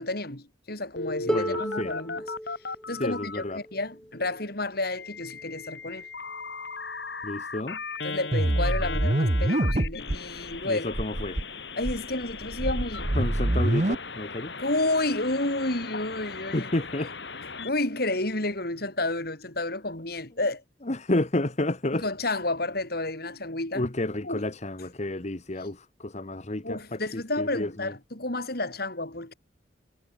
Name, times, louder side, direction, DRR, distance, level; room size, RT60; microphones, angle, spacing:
voice 1, 0.0-2.2 2.9-6.1 8.0-10.9 11.8-13.1 14.6-16.7 17.6-20.6 21.9-23.9 24.2-24.5 26.6-29.3, left 2 dB, 55° left, 5.7 m, -30 dB
Telephone, 1.0-3.4 4.9-17.7, left 4 dB, 70° left, 5.8 m, -37 dB
voice 2, 1.2-1.9 3.0-3.6 7.2-7.8 10.6-11.4 13.2-14.5 16.5-17.1 20.9-22.0 23.7-27.9, left 1 dB, 40° left, 1.3 m, -30 dB
Harp, 1.3-7.1 8.1-8.2, equal, 5° left, 2.8 m, -37 dB
sound 1, 8.3-10.2 10.5-10.6 10.9-11.4 11.8-13.9, right 1 dB, 40° right, 1.2 m, -25 dB
head